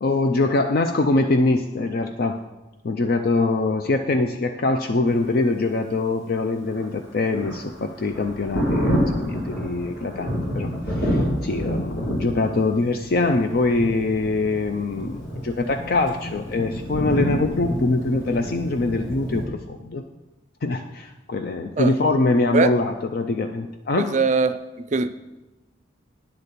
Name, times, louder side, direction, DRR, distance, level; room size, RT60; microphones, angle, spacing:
voice 1, 0.0-2.4 2.8-20.0 20.6-24.2, left 2 dB, 50° left, 6 dB, 0.4 m, -23 dB
Thunder, 6.6-19.5, equal, 85° left, 2.6 m, -28 dB
voice 2, 24.0-24.6 24.9-25.1, right 4 dB, 35° right, 11 dB, 0.4 m, -20 dB
9.7 x 4.2 x 6.6 m, 1.0 s
head